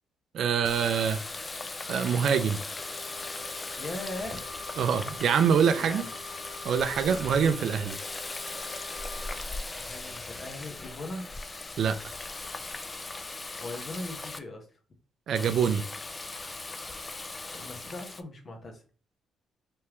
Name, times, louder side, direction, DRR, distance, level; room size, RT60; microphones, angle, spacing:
voice 1, 0.3-1.2 1.9-2.6 4.8-6.0 6.6-8.0 11.8-12.0 15.3-15.8, right 7 dB, 65° right, 0.4 m, -25 dB
Water tap faucet, 0.6-14.4 15.4-18.2, left 3 dB, 25° left, 0.4 m, -39 dB
Wind instrument woodwind instrument, 2.8-9.4, left 3 dB, 90° left, 1.3 m, -47 dB
voice 2, 3.8-4.4 5.7-6.1 9.7-11.3 13.6-14.7 17.4-18.8, left 2 dB, 40° left, 1.1 m, -39 dB
3.4 x 3.3 x 3.0 m
cardioid pair, 90°, 0 cm